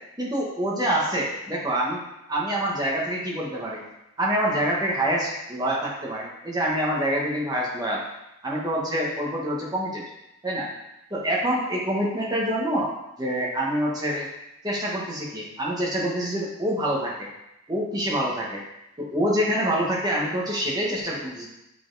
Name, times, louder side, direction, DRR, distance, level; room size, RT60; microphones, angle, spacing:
voice 1, 0.2-2.0 2.3-3.8 4.2-8.0 8.4-10.0 10.4-10.7 11.1-12.9 13.2-14.3 14.6-17.3 17.7-18.6 19.0-21.5, right 1 dB, 20° right, -3 dB, 1.2 m, -26 dB
7.6 x 4.1 x 4.0 m, 0.89 s
head